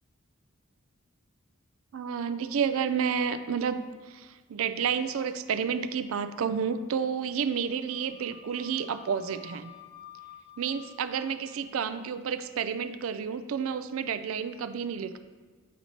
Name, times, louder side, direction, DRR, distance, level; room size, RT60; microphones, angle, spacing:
voice 1, 1.9-9.7 10.6-15.2, right 7 dB, 70° right, 11 dB, 0.4 m, -30 dB
Wind instrument woodwind instrument, 7.9-11.5, left 10 dB, 20° left, 1.3 m, -51 dB
9.2 x 4.1 x 2.9 m, 1.3 s
head